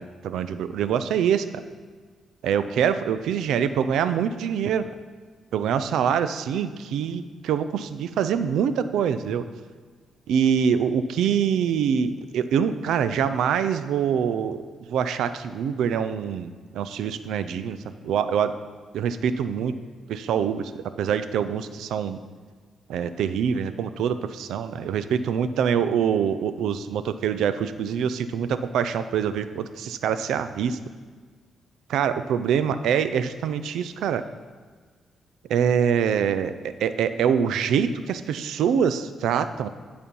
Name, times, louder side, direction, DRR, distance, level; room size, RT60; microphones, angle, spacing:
voice 1, 0.0-1.6 2.4-4.9 5.5-9.5 10.3-18.5 18.9-19.8 20.1-22.2 22.9-30.8 31.9-34.2 35.5-36.5 36.8-39.7, right 8 dB, 85° right, 12 dB, 0.4 m, -25 dB
11.0 x 4.3 x 5.4 m, 1.5 s
cardioid pair, 90°, 0 cm